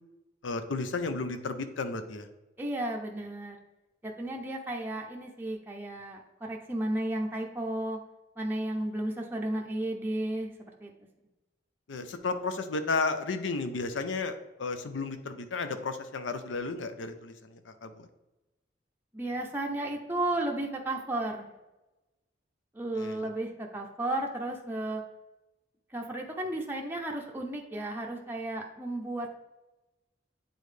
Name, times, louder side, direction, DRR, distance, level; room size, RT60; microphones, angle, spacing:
voice 1, 0.4-2.3 11.9-18.1 23.0-23.2, left 3 dB, 90° left, 9 dB, 0.6 m, -33 dB
voice 2, 2.6-3.6 4.0-8.0 8.4-10.9 19.1-21.5 22.7-25.0 25.9-29.4, right 1 dB, 10° right, 0 dB, 0.5 m, -33 dB
8.4 x 3.9 x 3.3 m, 1.0 s
head